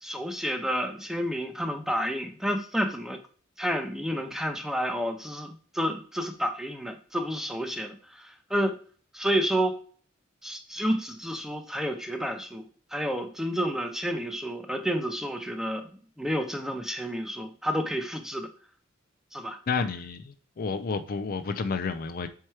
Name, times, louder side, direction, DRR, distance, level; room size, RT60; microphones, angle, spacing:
voice 1, 0.0-3.2 3.6-8.8 9.1-9.8 10.4-12.6 12.9-15.9 16.2-18.5 19.3-19.6, equal, ahead, 0.6 m, -30 dB
voice 2, 19.7-22.3, left 4 dB, 45° left, 0.4 m, -30 dB
4.6 x 4.4 x 4.7 m
head